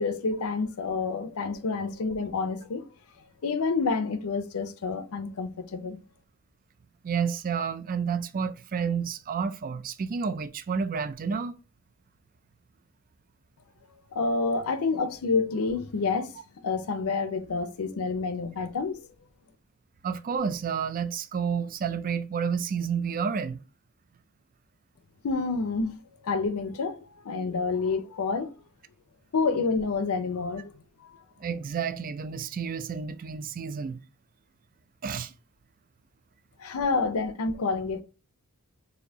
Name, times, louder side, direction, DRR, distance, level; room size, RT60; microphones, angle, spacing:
voice 1, 0.0-2.9 3.4-6.0 14.1-19.1 25.2-25.9 26.2-28.5 29.3-30.7 31.0-31.2 36.6-38.0, left 4 dB, 70° left, 0.6 m, -28 dB
voice 2, 7.0-11.5 20.0-23.6 31.4-34.0 35.0-35.3, right 6 dB, 40° right, 0.4 m, -30 dB
4.2 x 2.7 x 2.7 m
head